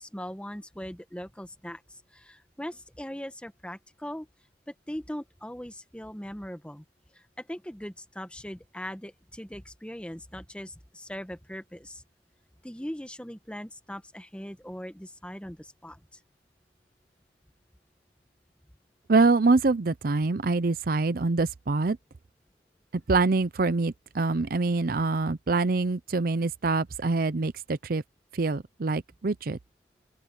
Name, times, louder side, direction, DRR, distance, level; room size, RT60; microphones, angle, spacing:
voice 1, 0.0-4.3 4.7-6.8 7.1-12.0 12.6-16.0, equal, 5° left, 1.2 m, -40 dB
voice 2, 19.1-22.0 23.1-28.0 28.3-29.6, right 3 dB, 55° right, 0.6 m, -25 dB
open air
head